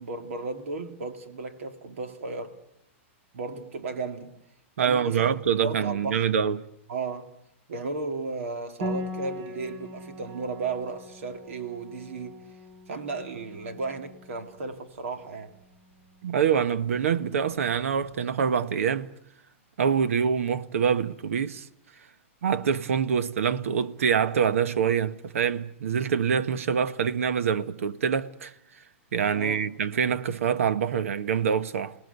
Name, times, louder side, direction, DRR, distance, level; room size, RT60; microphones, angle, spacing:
voice 1, 0.0-2.6 3.3-4.3 4.8-5.3 5.6-6.3 6.9-7.3 7.7-12.4 12.9-15.5 29.3-29.6, right 3 dB, 75° right, 2.5 m, -34 dB
voice 2, 4.8-6.7 16.2-19.1 19.8-21.7 22.4-28.5 29.1-32.0, right 7 dB, 90° right, 1.1 m, -25 dB
Piano, 8.8-18.1, equal, 50° right, 3.9 m, -41 dB
28.5 x 19.0 x 8.1 m
supercardioid pair, 180°, 7 cm